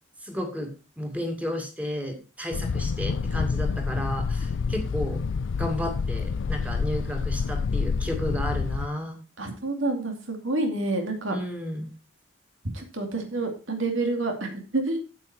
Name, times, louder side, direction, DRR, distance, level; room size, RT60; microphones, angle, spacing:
voice 1, 0.2-0.7 1.0-5.2 5.6-9.2 11.3-11.9, equal, 5° right, 3 dB, 2.4 m, -32 dB
sound 1, 2.5-8.9, left 5 dB, 70° left, 0.4 m, -28 dB
voice 2, 9.4-11.4 12.7-15.0, right 2 dB, 90° right, 3 dB, 2.5 m, -28 dB
9.3 x 8.6 x 4.4 m, 0.33 s
head